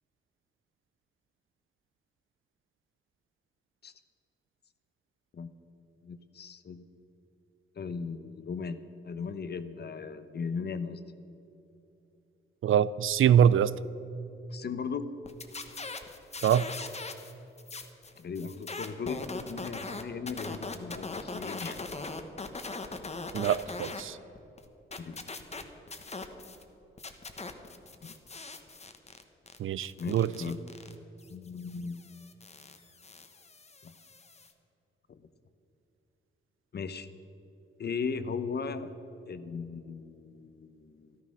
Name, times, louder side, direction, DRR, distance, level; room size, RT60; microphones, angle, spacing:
voice 1, 6.0-6.9 7.8-11.0 14.5-15.1 18.2-21.8 25.0-25.3 28.0-28.1 30.0-30.6 31.3-32.0 33.8-33.9 35.1-35.3 36.7-37.1 37.8-38.9 39.3-41.2, left 5 dB, 50° left, 11 dB, 0.9 m, -37 dB
voice 2, 12.6-13.7 16.4-16.7 23.3-24.2 29.6-30.3, right 9 dB, 75° right, 17 dB, 0.5 m, -24 dB
sound 1, 15.3-17.3 17.6-24.0 24.4-26.6 27.0-34.5, left 3 dB, 30° left, 1.2 m, -41 dB
13.5 x 13.0 x 6.3 m, 3.0 s
cardioid pair, 105°, 21 cm